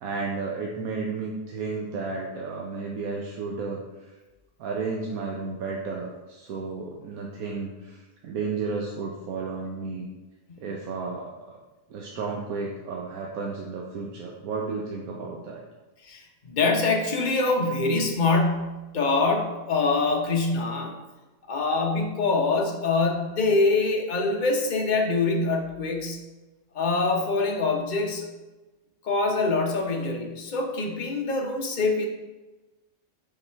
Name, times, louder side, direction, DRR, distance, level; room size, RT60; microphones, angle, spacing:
voice 1, 0.0-3.8 4.6-10.1 10.6-11.6 11.9-15.6, right 4 dB, 90° right, -1 dB, 1.2 m, -33 dB
voice 2, 16.0-21.0 21.5-26.2 26.7-28.3 29.0-32.1, left 3 dB, 40° left, 1 dB, 0.9 m, -24 dB
5.6 x 4.1 x 4.5 m, 1.1 s
omnidirectional pair, 1.5 m